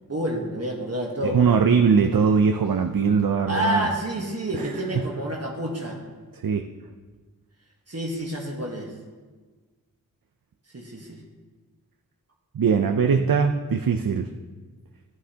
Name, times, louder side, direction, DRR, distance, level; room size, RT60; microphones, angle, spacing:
voice 1, 0.0-1.9 3.5-6.0 7.9-8.9 10.7-11.2, right 1 dB, 45° right, 0 dB, 1.3 m, -29 dB
voice 2, 1.3-3.9 4.6-4.7 4.9-5.1 6.3-6.6 12.5-14.3, right 6 dB, 80° right, 5 dB, 0.6 m, -21 dB
13.0 x 10.5 x 2.9 m, 1.4 s
wide cardioid pair, 60°, 34 cm